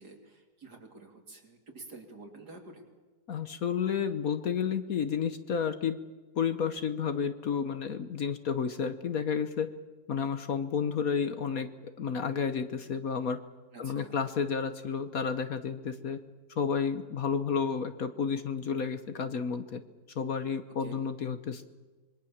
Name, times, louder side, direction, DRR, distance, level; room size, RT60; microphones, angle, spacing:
voice 1, 0.0-2.9 13.7-14.2 20.8-21.1, right 3 dB, 60° right, 3 dB, 3.7 m, -49 dB
voice 2, 3.3-6.0 6.4-9.7 10.1-11.7 12.0-13.4 13.8-16.2 16.5-19.8 20.1-21.6, left 6 dB, 55° left, 11 dB, 1.3 m, -31 dB
26.5 x 22.0 x 7.3 m, 1.3 s
omnidirectional pair, 2.0 m